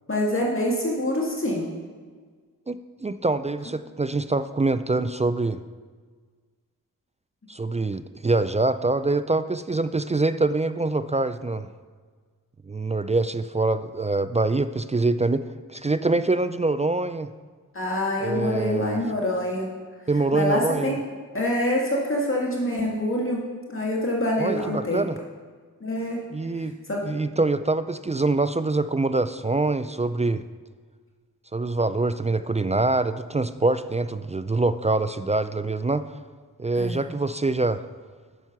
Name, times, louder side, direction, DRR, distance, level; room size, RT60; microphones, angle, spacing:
voice 1, 0.1-1.7 17.7-19.7 20.3-21.0 21.3-23.4 23.7-25.1 25.8-26.2 26.9-27.0 36.8-37.0, left 1 dB, 35° left, -3 dB, 2.0 m, -25 dB
voice 2, 2.7-5.6 7.5-11.7 12.7-15.4 15.7-17.3 18.2-19.0 20.1-21.0 24.4-25.2 26.3-26.8 27.0-30.4 31.5-36.1 36.6-37.8, right 2 dB, 20° right, 12 dB, 0.4 m, -24 dB
9.1 x 6.6 x 6.0 m, 1.5 s
cardioid pair, 50°, 36 cm